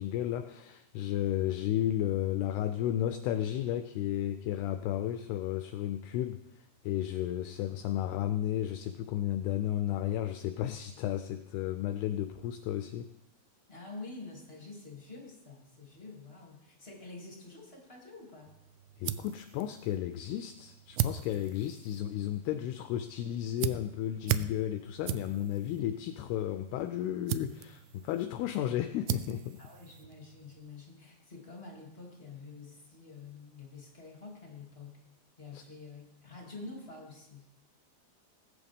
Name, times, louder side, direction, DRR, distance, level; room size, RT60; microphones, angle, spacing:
voice 1, 0.0-13.1 19.0-29.6 35.5-35.6, left 11 dB, 80° left, 9 dB, 2.4 m, -33 dB
voice 2, 13.7-18.5 29.6-35.0 35.4-37.4, left 3 dB, 20° left, -2 dB, 2.0 m, -48 dB
sound 1, 18.5-30.6, right 12 dB, 85° right, 2.2 m, -39 dB
20.0 x 9.2 x 3.6 m, 0.86 s
omnidirectional pair, 5.0 m